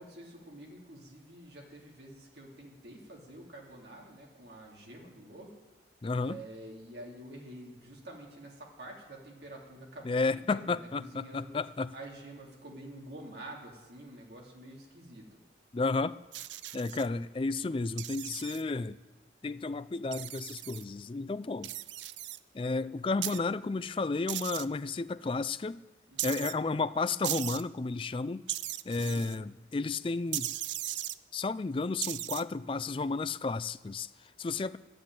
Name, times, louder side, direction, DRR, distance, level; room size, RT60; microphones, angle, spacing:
voice 1, 0.0-5.6 6.2-11.6 11.9-15.4 26.1-26.3 29.0-29.4 34.1-34.2, right 1 dB, 65° right, 2.8 m, -48 dB
voice 2, 6.0-6.4 10.0-11.9 15.7-16.2 16.7-19.0 19.4-21.7 22.5-25.8 26.2-28.4 28.9-30.5 31.3-34.1 34.4-34.8, left 3 dB, 30° left, 0.3 m, -32 dB
sound 1, 16.3-17.1 18.0-18.6 20.1-20.8 21.6-22.4 23.2-23.4 24.3-24.6 26.2-26.5 27.2-27.6 28.5-29.4 30.3-31.2 32.0-32.4, right 14 dB, 80° right, 0.5 m, -37 dB
11.0 x 9.8 x 9.0 m
head